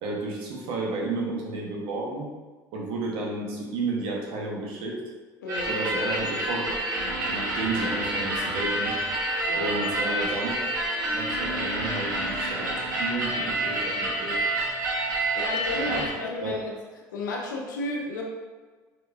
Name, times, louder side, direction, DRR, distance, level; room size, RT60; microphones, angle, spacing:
voice 1, 0.0-2.3 2.7-5.0 5.7-6.8 7.2-8.9 9.6-10.7 11.0-12.7 13.0-14.4 15.8-16.1 16.4-16.5, right 3 dB, 65° right, -2 dB, 1.2 m, -32 dB
voice 2, 5.4-5.8 9.4-9.9 15.3-16.8 17.1-18.2, left 2 dB, 85° left, -1 dB, 0.7 m, -32 dB
sound 1, 5.5-16.1, right 1 dB, 90° right, 0.9 m, -28 dB
4.5 x 4.3 x 2.6 m, 1.4 s
hypercardioid pair, 65°, 10 cm